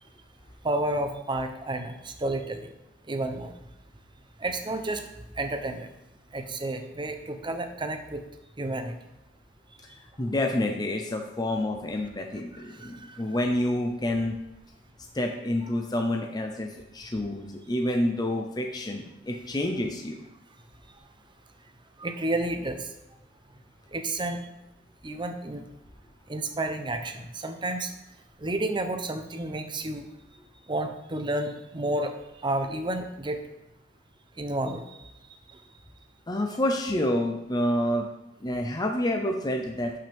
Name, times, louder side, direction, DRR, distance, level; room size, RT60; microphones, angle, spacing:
voice 1, 0.6-2.7 3.1-3.5 4.4-5.0 5.4-5.9 6.3-8.2 8.6-8.9 13.0-13.1 22.0-22.8 23.9-24.4 25.0-25.6 26.3-27.9 28.4-30.1 30.7-32.1 32.4-33.4 34.4-34.8, right 2 dB, 25° right, 7 dB, 0.8 m, -30 dB
voice 2, 10.2-14.4 15.1-20.2 36.3-38.0 38.4-40.0, left 1 dB, 20° left, 2 dB, 0.7 m, -28 dB
11.5 x 5.6 x 3.5 m, 0.94 s
head